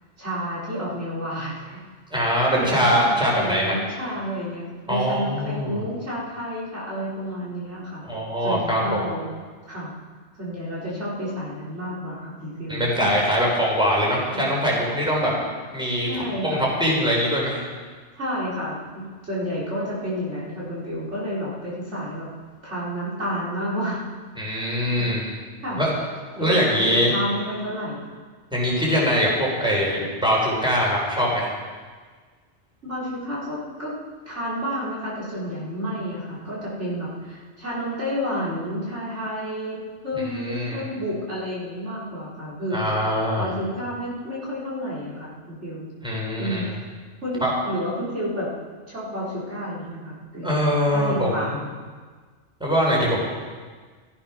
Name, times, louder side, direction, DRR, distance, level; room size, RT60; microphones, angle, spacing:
voice 1, 0.2-1.8 2.2-8.0 8.4-9.3 9.7-9.9 10.4-13.1 14.3-14.5 15.2-15.3 16.1-16.6 18.2-22.3 22.6-24.0 24.5-25.1 25.6-25.8 26.3-28.1 28.9-29.0 32.8-34.0 34.3-39.8 40.0-42.9 43.3-45.9 46.4-46.7 47.2-48.5 48.9-51.7, equal, 80° right, -7 dB, 4.7 m, -30 dB
voice 2, 2.1-3.7 4.9-5.8 8.0-9.0 12.7-15.3 15.7-17.6 24.4-25.2 25.8-25.9 26.4-27.1 28.5-31.5 40.2-40.8 42.7-43.5 46.0-46.7 47.4-47.5 50.4-51.6 52.6-53.3, equal, 5° right, -4 dB, 4.4 m, -22 dB
14.5 x 14.5 x 6.0 m, 1.5 s
omnidirectional pair, 1.2 m